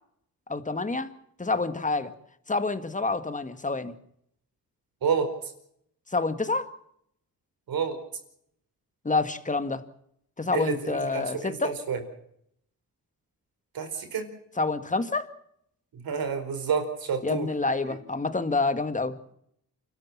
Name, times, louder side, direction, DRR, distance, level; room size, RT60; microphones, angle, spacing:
voice 1, 0.5-1.1 1.4-2.1 2.5-3.9 6.1-6.7 9.0-9.8 10.4-11.8 14.6-15.3 17.2-19.3, left 3 dB, 20° left, 10 dB, 1.9 m, -28 dB
voice 2, 10.5-12.0 13.7-14.3 16.0-17.5, right 6 dB, 80° right, 7 dB, 4.8 m, -29 dB
29.0 x 13.0 x 7.5 m, 0.72 s
cardioid pair, 90°, 35 cm